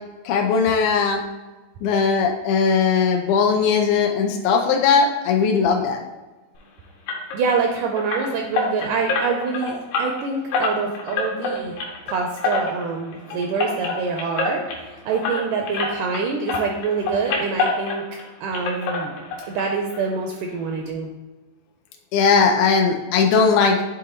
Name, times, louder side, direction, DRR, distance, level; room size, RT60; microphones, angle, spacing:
voice 1, 0.3-1.2 1.8-6.0 22.1-23.8, left 5 dB, 90° left, 2 dB, 2.5 m, -18 dB
sound 1, 7.1-16.2 16.5-18.3 18.5-19.6 19.9-20.0 20.5-20.6 20.9-21.0, left 3 dB, 75° left, 2.7 m, -27 dB
voice 2, 7.3-11.7 12.1-18.0 18.4-19.1 19.5-21.1, right 5 dB, 85° right, 2 dB, 1.9 m, -26 dB
10.0 x 3.6 x 2.9 m, 1.1 s
omnidirectional pair, 4.1 m